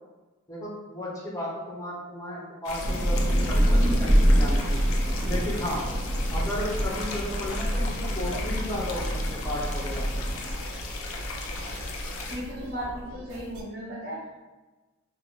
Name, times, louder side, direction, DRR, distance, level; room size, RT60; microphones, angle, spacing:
voice 1, 0.5-4.8 5.2-5.8 6.3-10.1 12.8-12.9, left 1 dB, 15° left, -5 dB, 0.5 m, -34 dB
sound 1, 2.6-12.4, left 2 dB, 85° left, 0.4 m, -35 dB
Thunder / Rain, 2.8-10.5, equal, 30° right, 0.5 m, -25 dB
sound 2, 4.9-13.6, equal, 90° right, 0.4 m, -44 dB
voice 2, 12.3-14.3, equal, 50° right, -9 dB, 0.9 m, -36 dB
2.6 x 2.0 x 3.0 m, 1.2 s
head